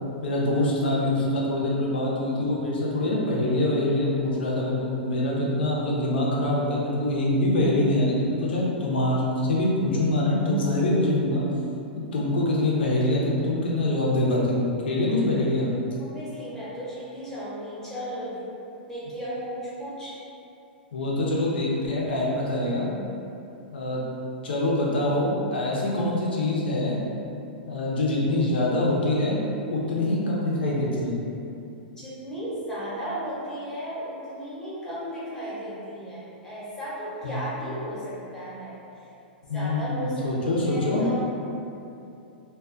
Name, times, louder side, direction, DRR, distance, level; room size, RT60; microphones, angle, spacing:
voice 1, 0.2-11.4 12.1-15.7 20.9-22.9 23.7-24.0 24.4-27.0 27.7-29.4 29.7-31.2 37.2-37.4 39.5-41.0, left 1 dB, 75° left, -4 dB, 0.6 m, -24 dB
voice 2, 16.0-18.4 18.9-20.2 32.0-38.8 39.5-41.2, equal, 10° left, -10 dB, 0.8 m, -35 dB
2.3 x 2.3 x 2.4 m, 2.7 s
hypercardioid pair, 110°, 6 cm